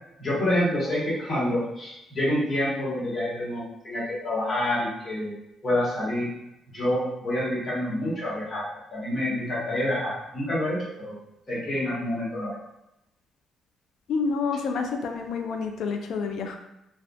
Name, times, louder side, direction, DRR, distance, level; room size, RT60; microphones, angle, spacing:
voice 1, 0.2-5.3 5.6-6.3 6.7-8.6 8.9-11.2 11.5-12.5, left 1 dB, 40° left, -7 dB, 1.3 m, -27 dB
voice 2, 14.1-16.6, left 5 dB, 75° left, 4 dB, 0.4 m, -28 dB
2.5 x 2.3 x 2.3 m, 0.86 s
cardioid pair, 90°, 0 cm